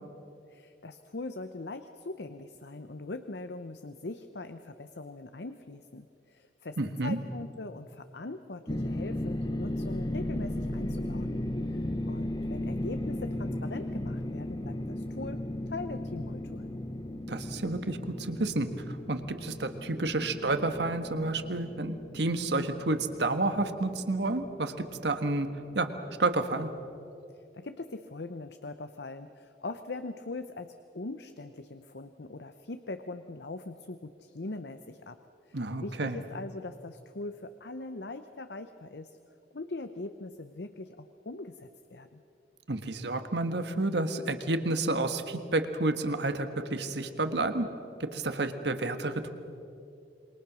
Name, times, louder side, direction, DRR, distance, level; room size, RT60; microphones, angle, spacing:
voice 1, 0.5-11.4 11.7-16.7 27.3-35.2 35.5-39.2 39.5-42.2, left 2 dB, 70° left, 9 dB, 0.8 m, -41 dB
voice 2, 6.8-7.2 17.3-25.5 25.7-25.9 26.2-26.7 35.5-36.2 42.7-47.7 48.0-49.3, right 2 dB, 75° right, 8 dB, 1.5 m, -30 dB
sound 1, 8.7-25.9, left 1 dB, 25° left, 1.0 m, -36 dB
27.5 x 22.5 x 6.3 m, 2.7 s
head